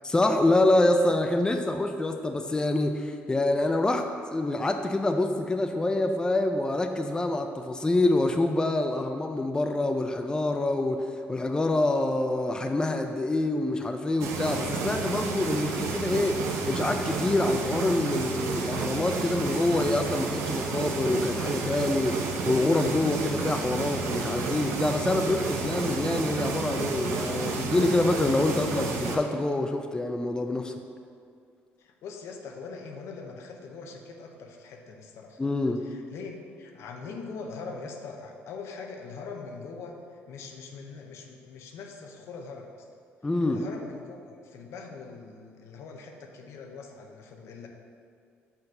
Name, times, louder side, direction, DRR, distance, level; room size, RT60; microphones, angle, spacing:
voice 1, 0.1-30.7 35.4-35.9 43.2-43.7, left 2 dB, 15° left, 5 dB, 0.4 m, -26 dB
sound 1, 14.2-29.2, right 4 dB, 80° right, 0.7 m, -31 dB
voice 2, 31.8-35.4 35.8-42.9 43.5-47.7, left 4 dB, 70° left, 2 dB, 0.7 m, -42 dB
5.5 x 3.9 x 5.6 m, 2.3 s
supercardioid pair, 75°, 5 cm